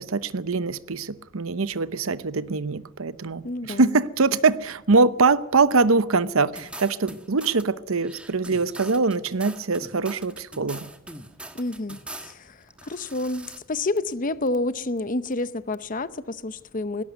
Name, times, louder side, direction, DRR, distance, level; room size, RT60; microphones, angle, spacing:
voice 1, 0.0-10.9, right 4 dB, 80° right, 0.8 m, -23 dB
voice 2, 3.4-4.0 11.5-17.0, left 2 dB, 40° left, 0.8 m, -29 dB
sound 1, 6.5-7.6 8.0-12.3 12.7-13.6, right 1 dB, 5° right, 1.4 m, -41 dB
18.5 x 17.0 x 9.5 m
head